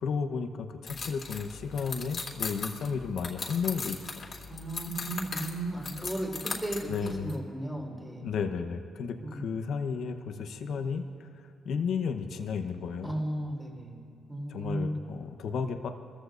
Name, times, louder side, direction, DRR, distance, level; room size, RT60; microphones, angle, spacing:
voice 1, 0.0-4.0 6.9-7.4 8.2-13.2 14.5-15.9, left 6 dB, 70° left, 6 dB, 1.0 m, -33 dB
sound 1, 0.9-7.3, left 4 dB, 45° left, 2.4 m, -38 dB
voice 2, 4.5-8.3 9.2-9.4 13.0-14.0 14.3-14.9, right 1 dB, 5° right, -2 dB, 4.1 m, -35 dB
25.0 x 14.5 x 2.6 m, 2.7 s
cardioid pair, 90°, 0 cm